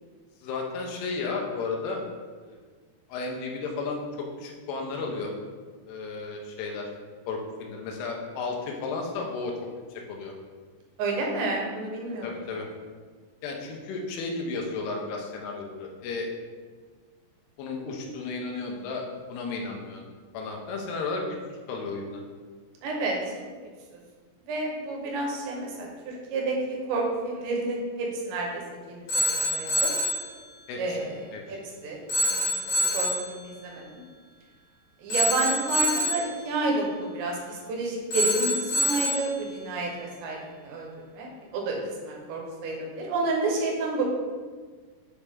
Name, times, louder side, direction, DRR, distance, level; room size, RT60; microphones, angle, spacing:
voice 1, 0.4-2.0 2.4-2.6 3.1-5.3 5.9-6.9 7.3-9.5 9.9-10.3 12.2-12.7 13.4-16.3 17.6-20.0 20.3-22.2 30.7-31.0 31.3-31.6, left 3 dB, 80° left, 0 dB, 2.7 m, -33 dB
voice 2, 11.0-12.3 22.8-23.2 24.5-28.6 28.9-29.9 30.8-31.6 31.8-33.9 35.0-44.0, right 2 dB, 85° right, -1 dB, 3.2 m, -30 dB
Telephone, 29.1-30.2 32.1-33.3 35.1-36.3 38.1-39.3, equal, 60° left, 2.3 m, -26 dB
7.1 x 4.3 x 3.5 m, 1.5 s
omnidirectional pair, 5.0 m